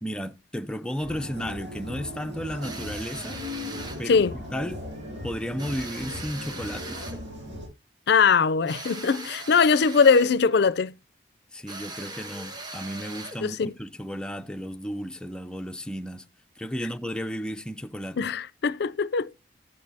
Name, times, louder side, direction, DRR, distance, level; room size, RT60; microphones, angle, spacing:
voice 1, 0.0-3.4 4.0-4.8 5.2-7.1 11.5-16.3 16.6-18.3, equal, 5° left, 0.4 m, -34 dB
sound 1, 1.0-7.7, left 1 dB, 90° right, 6.7 m, -38 dB
sound 2, 2.6-4.1 5.6-7.3 8.7-10.4 11.7-13.5, right 2 dB, 25° right, 1.2 m, -40 dB
voice 2, 4.1-4.4 8.1-10.9 13.4-13.7 18.2-19.4, left 5 dB, 60° left, 0.4 m, -21 dB
12.0 x 9.6 x 2.7 m
head